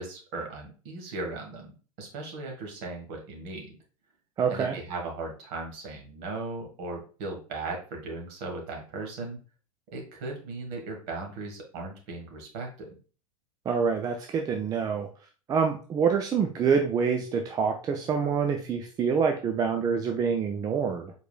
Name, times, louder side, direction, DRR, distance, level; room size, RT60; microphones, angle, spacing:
voice 1, 0.0-1.7 2.0-3.7 4.5-9.4 9.9-12.9, right 3 dB, 45° right, 1 dB, 1.4 m, -37 dB
voice 2, 4.4-4.7 13.7-15.1 15.5-21.1, right 6 dB, 20° right, 4 dB, 0.4 m, -26 dB
4.6 x 3.8 x 2.3 m, 0.37 s
figure-of-eight pair, 85°, 19 cm